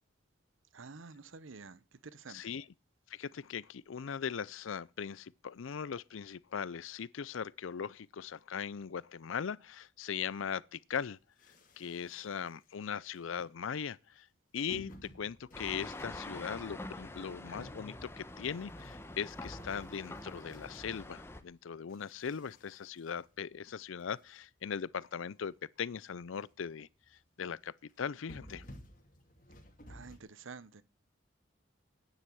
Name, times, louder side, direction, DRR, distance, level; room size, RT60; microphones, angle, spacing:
voice 1, 0.7-2.6 29.9-30.8, right 4 dB, 80° right, 0.8 m, -50 dB
voice 2, 2.3-2.6 3.1-11.2 11.8-14.3 14.5-26.9 27.4-28.6, left 7 dB, 85° left, 0.5 m, -39 dB
sound 1, 11.4-12.6 13.2-13.5 14.7-21.4 21.9-24.0 24.5-24.6 24.8-24.9 25.3-25.4 25.8-25.9 26.2-26.6 27.0-27.2 27.9-30.2, equal, 40° left, 2.4 m, -54 dB
sound 2, 15.5-21.4, left 2 dB, 10° left, 0.9 m, -46 dB
10.5 x 9.8 x 6.2 m
head